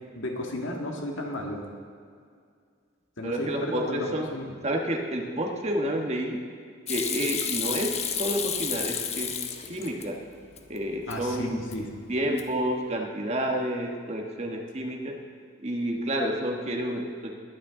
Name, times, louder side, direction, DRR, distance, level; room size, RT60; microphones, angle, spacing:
voice 1, 0.2-1.6 3.2-4.4 11.1-11.9, left 1 dB, 65° left, 0 dB, 2.0 m, -33 dB
voice 2, 3.2-4.3 4.6-6.4 6.9-9.3 9.7-10.2 10.7-11.6 12.1-15.2 15.6-17.4, equal, 35° right, 1 dB, 1.4 m, -29 dB
Hands / Sink (filling or washing), 6.9-10.1 10.4-11.2 11.5-12.0 12.2-12.7, left 7 dB, 30° left, 0.7 m, -31 dB
21.0 x 9.0 x 3.8 m, 2.2 s
head